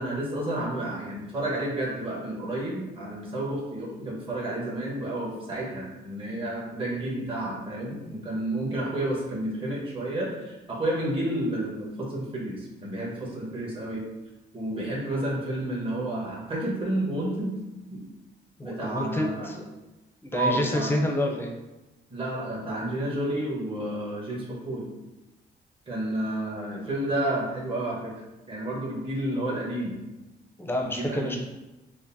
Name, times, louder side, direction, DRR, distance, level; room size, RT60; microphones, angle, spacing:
voice 1, 0.0-14.0 14.5-17.5 17.9-18.0 18.6-19.5 20.3-21.0 22.1-24.9 25.9-28.1 28.5-30.0 30.8-31.4, right 1 dB, 25° right, -4 dB, 1.2 m, -30 dB
voice 2, 18.6-19.6 20.2-21.5 30.6-31.4, left 1 dB, 10° left, 1 dB, 0.7 m, -28 dB
4.9 x 2.1 x 2.7 m, 1.0 s
cardioid pair, 90°, 20 cm